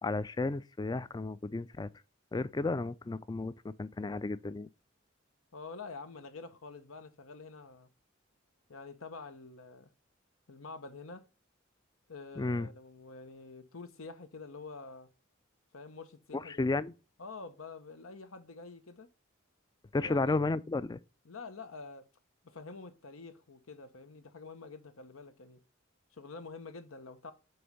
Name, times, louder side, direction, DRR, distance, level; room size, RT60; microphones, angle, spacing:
voice 1, 0.0-1.9 2.3-4.7 12.4-12.7 16.3-16.9 19.9-21.0, left 3 dB, 20° left, 0.3 m, -33 dB
voice 2, 5.5-7.9 8.7-9.9 10.5-11.2 12.1-15.1 15.7-16.7 17.2-19.1 20.0-20.5 21.2-22.1 22.4-25.6 26.1-27.3, left 4 dB, 90° left, 1.0 m, -47 dB
7.8 x 3.1 x 5.2 m
head